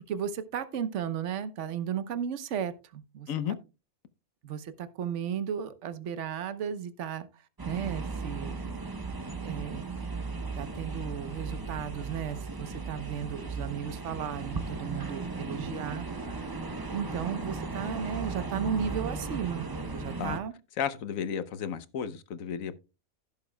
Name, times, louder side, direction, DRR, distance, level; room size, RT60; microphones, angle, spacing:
voice 1, 0.1-3.3 4.4-7.3 7.7-8.8 9.4-9.8 10.5-16.1 16.9-19.7 19.9-20.5, right 8 dB, 60° right, 1.2 m, -35 dB
sound 1, 7.6-20.4, right 3 dB, 25° right, 0.4 m, -36 dB
voice 2, 20.8-22.8, left 8 dB, 70° left, 1.2 m, -33 dB
16.0 x 7.1 x 2.2 m
omnidirectional pair, 1.5 m